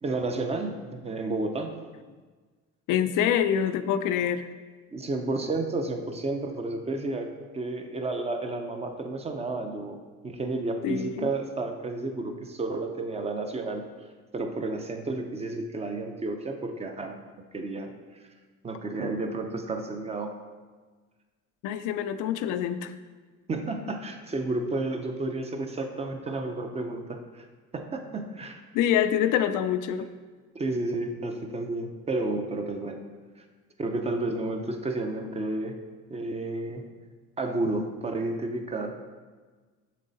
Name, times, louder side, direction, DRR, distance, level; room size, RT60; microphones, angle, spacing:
voice 1, 0.0-1.7 4.9-10.0 10.2-13.8 14.3-17.2 17.5-17.9 18.6-20.3 23.5-27.4 27.7-28.6 30.5-33.0 33.4-33.5 33.8-35.8 36.1-36.9 37.4-39.0, right 2 dB, 20° right, 5 dB, 0.5 m, -31 dB
voice 2, 2.9-4.5 10.8-11.3 21.6-22.9 28.7-30.1, left 9 dB, 80° left, 10 dB, 0.5 m, -26 dB
7.5 x 6.3 x 3.9 m, 1.4 s
cardioid pair, 165°, 30 cm